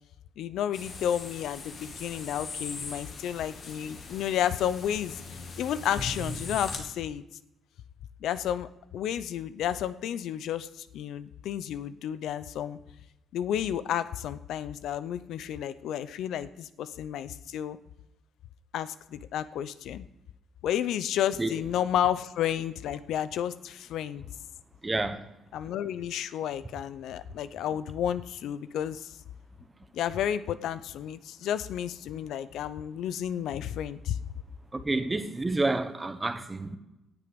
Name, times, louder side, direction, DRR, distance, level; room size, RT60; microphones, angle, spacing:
voice 1, 0.4-5.2 5.6-7.2 8.2-12.8 13.3-17.8 18.7-20.0 20.6-24.3 25.5-29.2 29.9-34.2, left 10 dB, 80° left, 0.5 m, -31 dB
sound 1, 0.7-6.8, left 3 dB, 60° left, 2.4 m, -40 dB
voice 2, 24.8-25.3 34.7-36.8, right 2 dB, 20° right, 1.2 m, -29 dB
17.5 x 7.0 x 5.2 m
cardioid pair, 90°, 0 cm